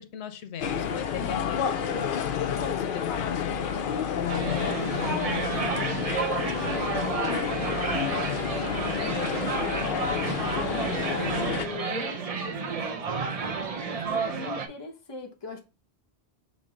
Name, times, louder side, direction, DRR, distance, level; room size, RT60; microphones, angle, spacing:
voice 1, 0.0-1.8 2.3-4.7, left 7 dB, 85° left, 0.9 m, -38 dB
sound 1, 0.6-11.7, left 7 dB, 60° left, 0.6 m, -30 dB
sound 2, 4.3-14.7, right 5 dB, 45° right, 0.5 m, -31 dB
voice 2, 4.4-7.7 8.3-10.1 10.4-15.6, left 2 dB, 25° left, 0.8 m, -40 dB
6.1 x 2.0 x 3.7 m
omnidirectional pair, 1.1 m